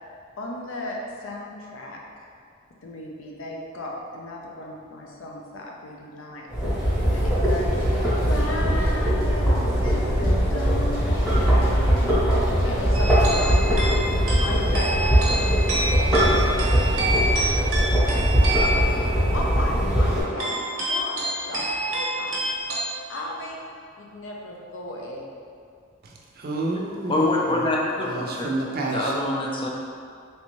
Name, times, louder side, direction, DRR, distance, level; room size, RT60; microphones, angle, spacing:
voice 1, 0.4-2.2 2.8-6.5 7.1-7.8 8.2-13.9 14.4-15.4 15.8-16.4 17.1-18.1 18.4-18.9 19.3-21.2 21.5-22.5 23.1-23.6 24.0-25.3, left 1 dB, 80° left, -1 dB, 0.5 m, -35 dB
sound 1, 6.5-20.2, equal, 5° right, 0.8 m, -21 dB
sound 2, 7.1-12.7, equal, 50° left, 0.9 m, -39 dB
sound 3, 12.9-22.8, right 1 dB, 90° right, 0.6 m, -28 dB
voice 2, 26.4-27.6 28.0-29.1, right 2 dB, 50° right, -1 dB, 0.4 m, -29 dB
voice 3, 27.1-28.5 28.9-29.7, left 2 dB, 25° left, -2 dB, 0.4 m, -24 dB
3.3 x 2.6 x 3.0 m, 2.2 s
head